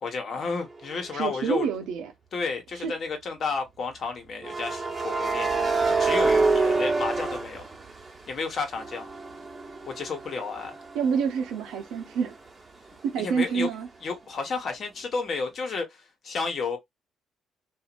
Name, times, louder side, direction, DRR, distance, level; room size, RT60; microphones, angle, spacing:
voice 1, 0.0-1.7 2.3-5.5 5.9-7.6 8.3-9.1 9.9-10.8 13.2-13.7 14.0-16.8, left 4 dB, 55° left, 1.2 m, -32 dB
sound 1, 1.1-1.4 4.4-8.3 8.7-12.3, right 3 dB, 25° right, 1.1 m, -27 dB
voice 2, 1.1-2.1 2.8-2.9 10.9-12.3 13.0-13.9, right 6 dB, 90° right, 0.6 m, -27 dB
2.8 x 2.5 x 2.5 m
cardioid pair, 90°, 0 cm